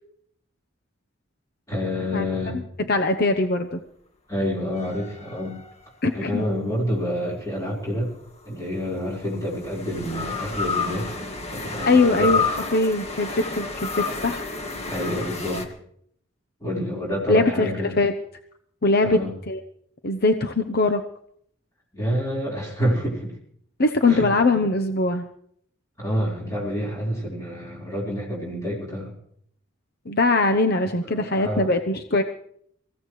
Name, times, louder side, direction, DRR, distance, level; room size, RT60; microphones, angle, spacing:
voice 1, 1.7-2.6 4.3-5.6 6.1-8.1 8.5-11.2 11.5-12.4 14.9-15.7 16.6-18.0 19.0-19.3 21.9-23.4 24.1-24.3 26.0-29.1 31.0-31.7, equal, 15° left, -5 dB, 4.3 m, -28 dB
voice 2, 2.9-3.8 6.0-6.4 11.9-12.4 12.7-14.4 17.3-17.7 18.0-18.1 18.8-19.2 19.5-19.6 20.0-21.0 23.8-25.3 30.1-32.2, left 2 dB, 55° left, 7 dB, 0.9 m, -21 dB
sound 1, 4.7-6.2 8.1-15.6, left 4 dB, 35° left, 2.0 m, -30 dB
24.5 x 16.0 x 3.2 m, 0.66 s
head